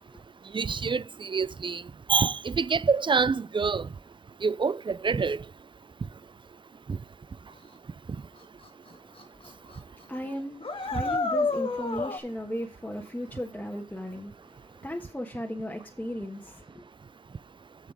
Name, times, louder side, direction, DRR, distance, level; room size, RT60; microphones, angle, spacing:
voice 1, 0.5-1.8 2.1-3.9 4.4-5.4 6.9-7.0, right 5 dB, 40° right, 0.4 m, -26 dB
sound 1, 8.6-8.7 9.2-9.5 9.7-9.8 10.6-12.2, left 3 dB, 50° left, 1.2 m, -29 dB
voice 2, 8.9-16.8, equal, 10° left, 1.3 m, -37 dB
7.3 x 7.2 x 4.9 m
wide cardioid pair, 105°, 12 cm